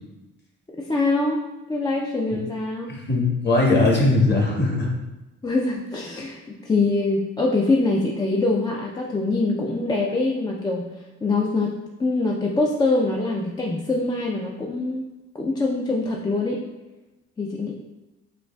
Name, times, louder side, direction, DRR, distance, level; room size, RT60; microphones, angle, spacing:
voice 1, 0.8-1.4 1.7-2.9 5.4-10.9 11.2-15.1 15.3-16.6 17.4-17.7, left 2 dB, 15° left, -1 dB, 0.4 m, -24 dB
voice 2, 2.9-4.9, left 2 dB, 35° left, -1 dB, 1.2 m, -20 dB
6.7 x 2.4 x 2.3 m, 1.0 s
cardioid pair, 90°, 30 cm